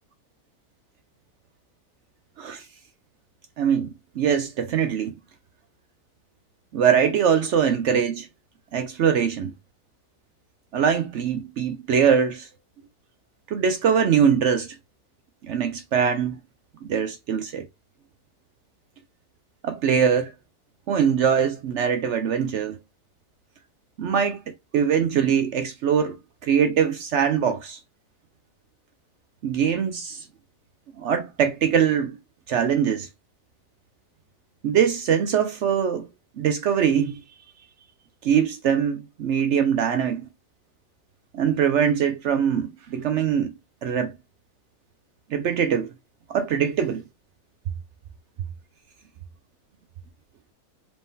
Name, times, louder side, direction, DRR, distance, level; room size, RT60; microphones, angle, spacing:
voice 1, 3.6-5.1 6.7-8.3 8.7-9.5 10.7-12.5 13.5-14.8 15.4-16.4 16.8-17.7 19.6-20.3 20.9-22.8 24.0-24.4 24.7-26.2 26.4-27.8 29.4-30.3 31.0-32.2 32.5-33.1 34.6-36.1 36.4-37.2 38.2-40.3 41.3-43.5 43.8-44.1 45.3-45.9 46.3-47.0, right 7 dB, 65° right, 0.7 m, -22 dB
4.4 x 3.6 x 2.6 m
omnidirectional pair, 1.6 m